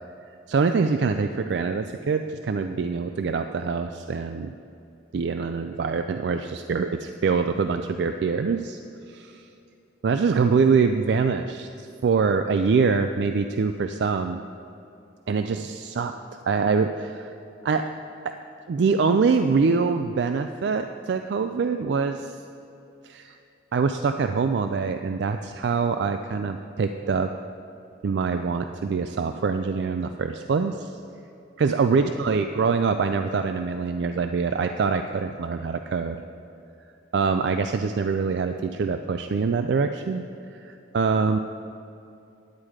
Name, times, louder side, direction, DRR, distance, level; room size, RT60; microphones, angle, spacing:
voice 1, 0.5-4.5 5.1-8.8 9.1-9.4 10.0-14.4 15.3-16.2 16.5-17.3 17.6-17.9 18.2-18.4 18.7-22.4 23.0-23.4 23.7-27.3 28.0-31.0 31.6-36.2 37.1-40.2 40.5-41.4, right 5 dB, 65° right, 7 dB, 0.3 m, -24 dB
10.5 x 8.7 x 4.8 m, 2.7 s
head